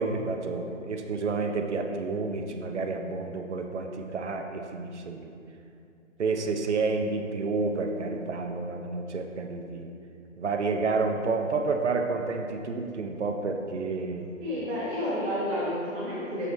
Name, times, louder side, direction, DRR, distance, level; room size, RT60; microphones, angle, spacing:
voice 1, 0.0-5.3 6.2-9.9 10.4-14.3, right 4 dB, 60° right, 4 dB, 0.6 m, -30 dB
voice 2, 14.4-16.5, left 1 dB, 10° right, -9 dB, 0.7 m, -30 dB
6.8 x 5.4 x 3.1 m, 2.5 s
figure-of-eight pair, 145°, 39 cm